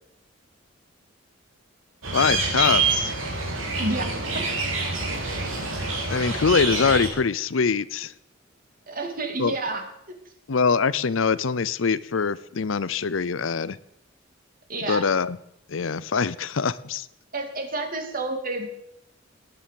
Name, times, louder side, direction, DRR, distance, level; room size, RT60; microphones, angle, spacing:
sound 1, 2.0-7.1, right 3 dB, 90° right, 4.5 m, -26 dB
voice 1, 2.1-3.1 6.1-8.1 9.4-9.6 10.5-13.8 14.8-15.4 15.7-17.1, left 5 dB, 80° left, 18 dB, 0.6 m, -23 dB
voice 2, 3.8-4.5 8.9-9.8 14.7-15.0 17.3-18.7, right 2 dB, 45° right, 5 dB, 3.0 m, -29 dB
18.5 x 9.9 x 7.8 m, 0.78 s
head